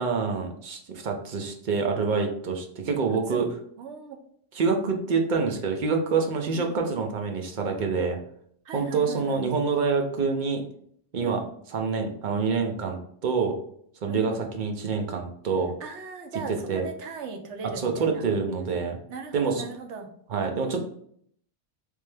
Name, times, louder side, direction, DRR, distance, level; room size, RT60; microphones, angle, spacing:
voice 1, 0.0-3.5 4.5-8.2 8.7-10.6 11.1-11.4 11.7-13.5 14.0-15.7 16.7-16.8 17.8-19.0 19.3-19.6 20.3-20.8, right 5 dB, 50° right, 3 dB, 0.7 m, -26 dB
voice 2, 3.8-4.2 6.5-6.8 8.6-9.4 11.2-11.4 14.1-14.4 15.8-18.2 19.1-20.1, right 5 dB, 80° right, 5 dB, 1.0 m, -38 dB
3.4 x 3.2 x 3.4 m, 0.65 s
omnidirectional pair, 1.2 m